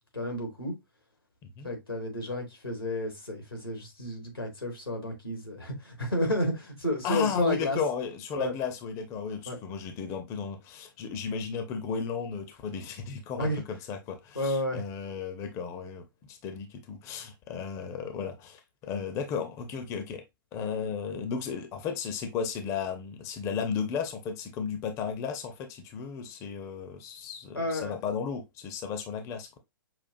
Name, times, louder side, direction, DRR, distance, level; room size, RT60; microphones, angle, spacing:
voice 1, 0.1-0.7 1.6-7.8 8.4-8.5 9.5-9.6 13.4-13.6 14.3-14.8 27.5-27.9, left 1 dB, 90° left, 1.6 m, -31 dB
voice 2, 7.0-20.2 20.5-29.6, left 6 dB, 25° left, 0.6 m, -34 dB
5.8 x 2.4 x 2.6 m
figure-of-eight pair, 115°, 12 cm